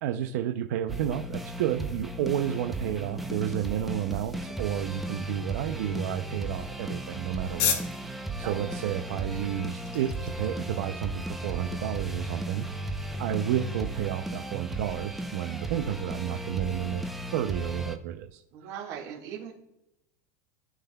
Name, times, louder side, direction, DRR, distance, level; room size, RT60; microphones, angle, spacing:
voice 1, 0.0-7.8 8.4-12.7 13.2-18.4, right 11 dB, 70° right, 6 dB, 0.5 m, -31 dB
sound 1, 0.9-18.0, right 1 dB, ahead, 0.5 m, -35 dB
sound 2, 4.8-11.8, left 7 dB, 45° left, 1.5 m, -37 dB
voice 2, 8.4-9.4 13.1-13.6 18.5-19.5, right 8 dB, 50° right, -4 dB, 1.7 m, -42 dB
15.5 x 5.7 x 2.3 m, 0.88 s
supercardioid pair, 170°, 9 cm